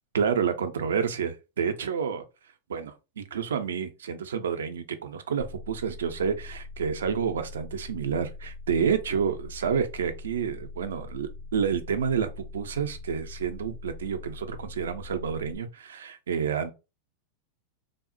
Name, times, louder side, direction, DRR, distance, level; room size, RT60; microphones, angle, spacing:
voice 1, 0.1-2.2 2.7-16.7, right 7 dB, 70° right, 0.4 m, -29 dB
sound 1, 5.4-15.5, left 3 dB, 50° left, 0.8 m, -42 dB
3.3 x 2.0 x 2.5 m
figure-of-eight pair, 90°, 0 cm